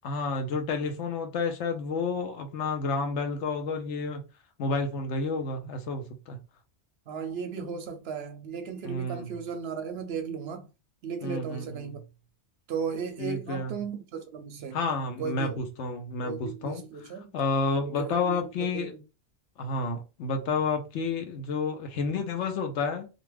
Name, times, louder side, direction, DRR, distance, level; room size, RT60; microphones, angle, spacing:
voice 1, 0.0-4.2 4.6-6.4 8.8-9.3 11.2-11.9 13.2-13.7 14.7-18.9 19.6-23.1, left 3 dB, 80° left, 0.9 m, -30 dB
voice 2, 7.1-10.7 11.0-12.0 12.7-14.8 15.2-15.6 16.2-17.3 17.8-19.0, right 6 dB, 65° right, 0.7 m, -36 dB
2.5 x 2.3 x 3.2 m
omnidirectional pair, 1.2 m